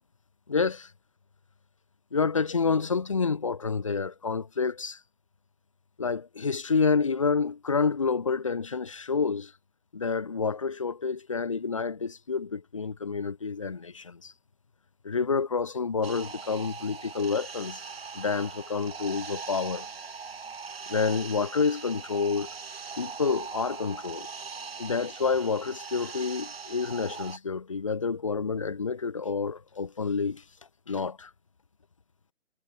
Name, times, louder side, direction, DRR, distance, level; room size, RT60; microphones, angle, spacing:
voice 1, 0.5-0.9 2.1-5.0 6.0-9.5 9.9-14.3 15.0-17.8 18.1-19.9 20.9-22.5 23.0-24.3 24.8-30.4 30.9-31.3, left 5 dB, 25° left, 0.9 m, -28 dB
sound 1, 16.0-27.4, right 5 dB, 55° right, 3.4 m, -41 dB
hypercardioid pair, 170°, 36 cm